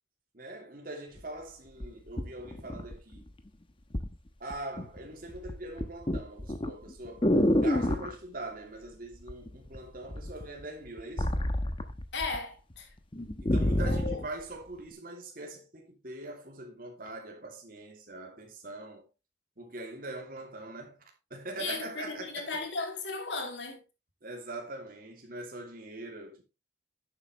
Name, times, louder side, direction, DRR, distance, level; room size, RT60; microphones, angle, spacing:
voice 1, 0.3-3.3 4.4-11.3 13.4-19.1 19.6-21.0 21.3-22.6 24.2-26.4, right 2 dB, 50° right, 2.7 m, -42 dB
sound 1, 1.2-1.3 1.8-3.3 3.9-4.2 4.5-5.0 5.3-8.2 9.3-9.8 10.1-12.4 12.7-12.8 13.1-14.3 14.9-15.0, left 1 dB, 30° left, 1.0 m, -28 dB
voice 2, 12.1-12.9 13.8-14.2 21.6-23.8, left 4 dB, 80° left, 2.7 m, -36 dB
11.0 x 8.1 x 3.2 m
head